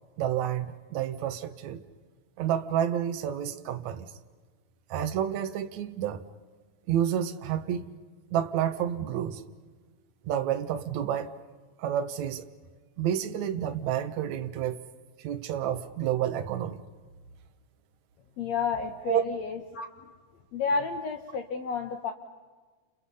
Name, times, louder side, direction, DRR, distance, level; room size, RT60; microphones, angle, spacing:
voice 1, 0.2-1.8 2.4-4.1 4.9-6.2 6.9-7.9 8.3-9.4 10.2-11.3 11.8-12.5 13.0-14.8 15.2-16.8 19.1-19.2, right 10 dB, 65° right, 8 dB, 1.8 m, -29 dB
voice 2, 18.4-20.1 20.5-22.1, left 5 dB, 85° left, 5 dB, 1.5 m, -31 dB
30.0 x 29.5 x 5.6 m, 1.4 s
omnidirectional pair, 4.9 m